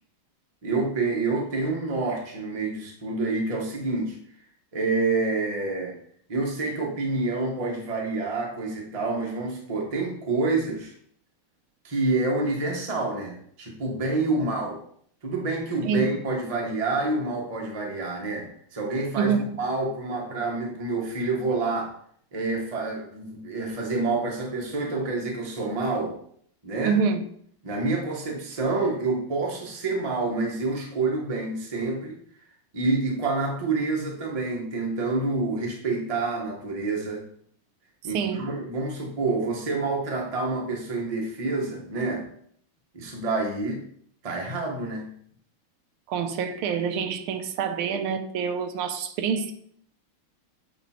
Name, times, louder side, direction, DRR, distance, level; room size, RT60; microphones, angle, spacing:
voice 1, 0.6-4.2 4.7-5.9 6.3-10.9 11.8-14.8 15.2-21.9 22.3-26.2 26.6-27.0 27.6-32.2 32.7-37.2 38.0-42.3 42.9-43.8 44.2-45.1, right 3 dB, 25° right, 0.8 m, -28 dB
voice 2, 26.8-27.2 38.1-38.4 46.1-49.5, right 6 dB, 85° right, 1.5 m, -26 dB
7.0 x 3.3 x 4.3 m
omnidirectional pair, 2.3 m